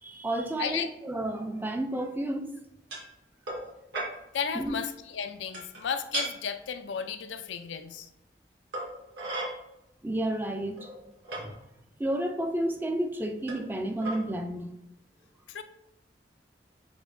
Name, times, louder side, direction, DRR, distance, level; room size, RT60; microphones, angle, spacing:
voice 1, 0.0-2.5 4.5-4.8 10.0-10.9 11.4-11.6 12.0-14.7, right 1 dB, 10° right, 5 dB, 0.4 m, -31 dB
sound 1, 2.9-3.1 3.5-3.7 3.9-4.1 5.5-5.8 6.1-6.3 7.5-7.6 8.7-9.5 10.3-10.4 10.8-11.4 12.3-12.4 13.5-13.7 14.0-14.2, right 2 dB, 70° right, 1.6 m, -34 dB
voice 2, 4.3-8.1 15.5-15.6, left 7 dB, 80° left, 9 dB, 0.4 m, -34 dB
7.2 x 2.7 x 2.6 m, 0.86 s
head